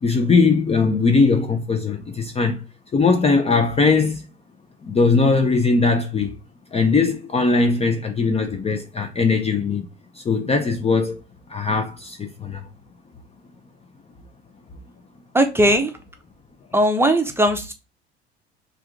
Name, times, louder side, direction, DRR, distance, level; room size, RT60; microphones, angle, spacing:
voice 1, 0.0-2.6 2.9-4.2 4.8-6.4 6.7-9.9 10.2-11.2 11.5-12.7, left 4 dB, 20° left, 0.6 m, -20 dB
voice 2, 15.3-15.9 16.7-17.7, right 1 dB, 5° right, 0.8 m, -18 dB
3.4 x 2.6 x 4.5 m
figure-of-eight pair, 60°, 32 cm